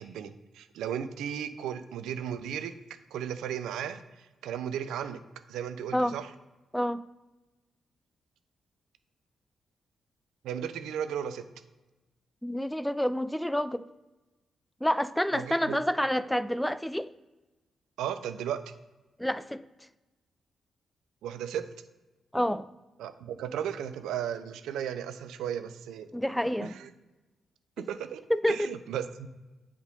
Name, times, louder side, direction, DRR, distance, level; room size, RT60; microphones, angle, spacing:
voice 1, 0.0-2.7 3.1-5.2 5.5-6.3 10.4-11.5 15.3-15.8 18.0-18.7 21.2-21.7 23.0-26.1 26.6-26.9 27.8-28.2 28.5-29.3, right 9 dB, 80° right, 0.4 m, -35 dB
voice 2, 12.4-13.9 14.8-17.1 19.2-19.7 22.3-22.7 26.1-26.7 27.8-27.9 28.3-28.7, equal, 5° left, 0.3 m, -28 dB
7.9 x 3.7 x 4.0 m
hypercardioid pair, 45°, 0 cm